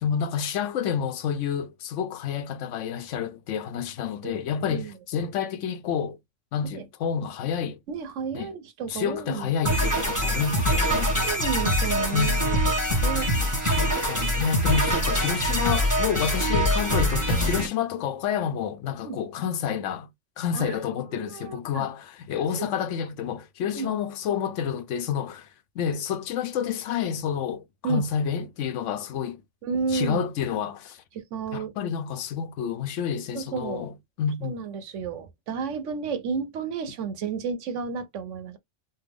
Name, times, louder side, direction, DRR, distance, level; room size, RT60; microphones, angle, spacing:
voice 1, 0.0-6.2 6.5-7.8 8.3-8.5 8.9-11.2 12.1-12.5 13.6-20.1 20.4-25.5 25.8-29.4 29.9-31.0 31.5-34.6, left 7 dB, 85° left, 1.0 m, -29 dB
voice 2, 7.9-9.5 11.2-12.6 13.0-13.3 19.0-19.2 20.5-20.8 21.1-21.9 23.7-23.9 27.8-28.1 29.6-30.2 31.1-31.7 33.3-33.9 34.4-38.6, right 5 dB, 85° right, 1.1 m, -32 dB
sound 1, 9.7-17.7, equal, 15° right, 1.2 m, -24 dB
3.3 x 2.1 x 3.5 m
omnidirectional pair, 1.2 m